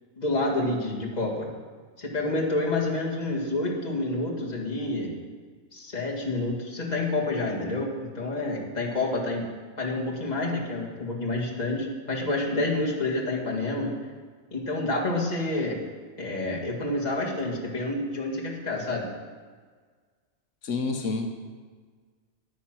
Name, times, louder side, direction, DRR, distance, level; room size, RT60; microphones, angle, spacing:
voice 1, 0.2-1.5 2.0-5.1 5.7-9.5 9.8-13.9 14.5-15.8 16.2-19.1, left 2 dB, 35° left, -3 dB, 2.0 m, -28 dB
voice 2, 20.6-21.3, left 3 dB, 85° left, 4 dB, 1.3 m, -28 dB
9.9 x 9.3 x 6.0 m, 1.5 s
omnidirectional pair, 1.2 m